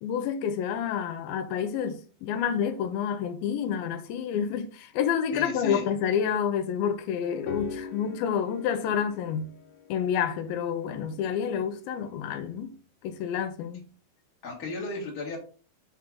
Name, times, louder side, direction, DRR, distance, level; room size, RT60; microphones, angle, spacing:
voice 1, 0.0-9.6 9.9-12.7 13.0-13.9, left 8 dB, 90° left, 2.5 m, -29 dB
voice 2, 5.3-5.8 14.4-15.4, left 3 dB, 35° left, 1.7 m, -34 dB
sound 1, 7.2-12.2, left 5 dB, 70° left, 2.3 m, -42 dB
6.1 x 4.5 x 3.7 m
omnidirectional pair, 4.2 m